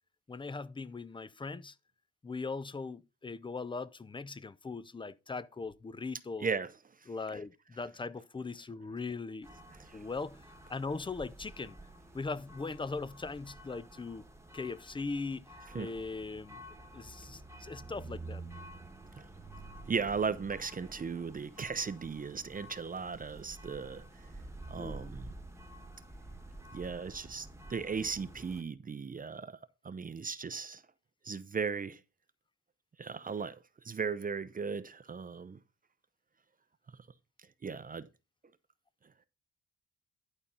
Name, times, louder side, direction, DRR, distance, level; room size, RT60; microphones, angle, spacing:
voice 1, 0.3-1.7 2.2-6.5 7.1-9.5 9.9-10.4 10.7-11.8 12.1-14.3 14.5-15.5 15.7-16.6 16.9-18.4 24.7-25.1, left 4 dB, 15° left, 0.6 m, -40 dB
voice 2, 6.4-6.7 9.8-10.0 15.7-15.9 19.2-19.3 19.9-24.0 24.7-25.3 26.7-29.6 29.8-30.8 31.2-32.0 33.0-33.6 33.8-35.6 37.6-38.1, right 5 dB, 30° right, 0.7 m, -36 dB
sound 1, 9.4-28.6, right 2 dB, 10° right, 1.3 m, -50 dB
11.0 x 4.3 x 5.4 m
cardioid pair, 90°, 30 cm